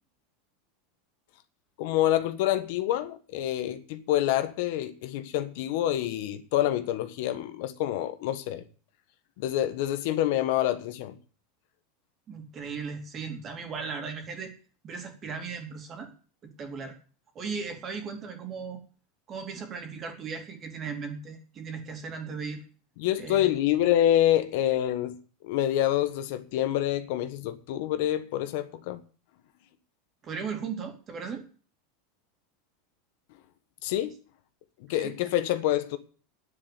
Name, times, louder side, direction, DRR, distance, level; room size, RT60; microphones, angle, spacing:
voice 1, 1.8-8.6 9.4-11.2 23.0-25.2 25.4-29.0 33.8-34.1 34.9-36.0, left 12 dB, 60° left, 1.3 m, -27 dB
voice 2, 12.3-14.5 14.8-16.1 16.6-17.0 17.3-18.8 19.3-22.6 23.2-23.5 30.2-31.4 34.9-35.1, right 5 dB, 25° right, 2.9 m, -37 dB
9.8 x 7.6 x 9.5 m
supercardioid pair, 160°, 0 cm